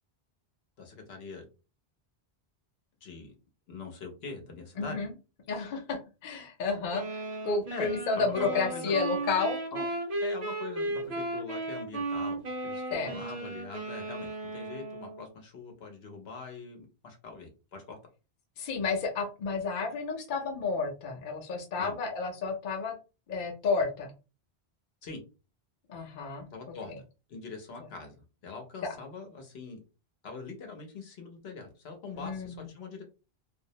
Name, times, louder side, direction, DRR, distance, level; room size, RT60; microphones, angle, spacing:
voice 1, 0.8-1.4 3.0-3.3 3.7-5.0 7.7-7.9 8.2-9.0 9.7-9.9 10.2-18.0 21.8-21.9 25.0-25.2 26.5-26.9 27.3-28.2 28.4-29.8 30.2-33.0, left 4 dB, 75° left, 3 dB, 1.0 m, -43 dB
voice 2, 4.8-5.1 5.5-9.6 12.9-13.1 18.6-23.0 23.3-24.1 25.9-26.5 26.9-27.0 28.8-29.0 32.1-32.7, left 4 dB, 55° left, 1 dB, 0.7 m, -31 dB
sound 1, 6.9-15.3, right 2 dB, 40° right, 0.8 m, -35 dB
2.5 x 2.0 x 2.7 m, 0.31 s
omnidirectional pair, 1.1 m